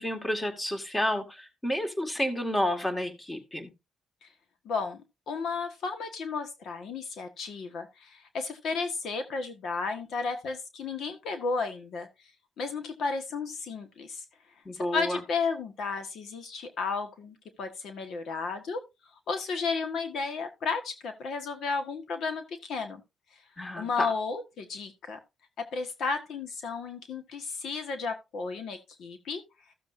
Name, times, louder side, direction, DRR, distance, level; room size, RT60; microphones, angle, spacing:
voice 1, 0.0-3.7 14.7-15.2 23.6-24.1, left 1 dB, 15° left, 2.0 m, -30 dB
voice 2, 4.6-5.0 5.3-12.1 12.6-14.2 14.7-18.8 19.3-23.0 23.7-25.2 25.6-29.4, left 4 dB, 70° left, 1.5 m, -33 dB
14.5 x 7.2 x 2.7 m
cardioid pair, 90°, 0 cm